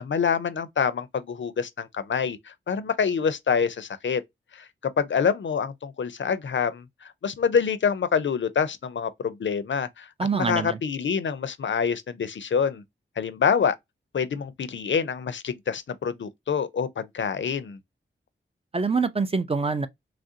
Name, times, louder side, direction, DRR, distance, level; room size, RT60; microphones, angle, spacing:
voice 1, 0.0-4.2 4.5-4.7 5.0-10.1 10.3-12.8 13.2-13.8 14.1-17.8, left 6 dB, 65° left, 0.5 m, -26 dB
voice 2, 10.2-10.8 18.7-19.9, right 4 dB, 30° right, 0.4 m, -25 dB
3.1 x 2.5 x 2.7 m
cardioid pair, 55°, 21 cm